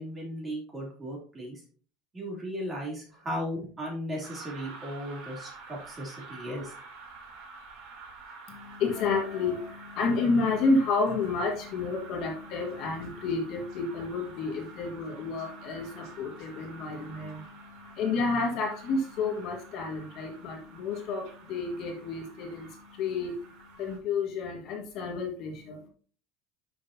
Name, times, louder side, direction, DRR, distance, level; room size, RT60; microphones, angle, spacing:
voice 1, 0.0-1.6 2.1-6.7, equal, 15° right, -2 dB, 3.1 m, -36 dB
sound 1, 4.2-24.0, right 4 dB, 50° right, 3.2 m, -49 dB
voice 2, 8.5-25.9, left 3 dB, 40° left, 1 dB, 1.8 m, -30 dB
11.0 x 6.6 x 2.8 m, 0.43 s
cardioid pair, 175°, 0 cm